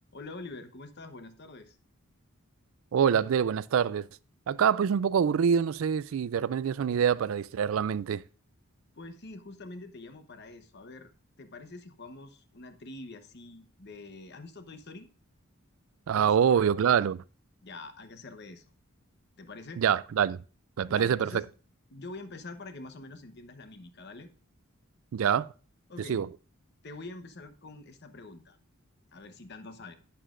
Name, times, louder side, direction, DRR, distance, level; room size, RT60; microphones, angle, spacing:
voice 1, 0.1-1.8 8.9-11.1 11.4-15.1 16.1-16.6 17.6-18.7 19.4-19.8 20.9-21.4 21.9-24.3 25.9-26.3 26.8-28.6 29.1-30.0, left 2 dB, 50° left, 1.0 m, -45 dB
voice 2, 2.9-4.1 4.5-8.2 16.1-17.2 19.8-20.4 20.8-21.4 25.1-25.5 26.1-26.3, right 7 dB, 70° right, 0.3 m, -25 dB
11.0 x 9.3 x 2.5 m
head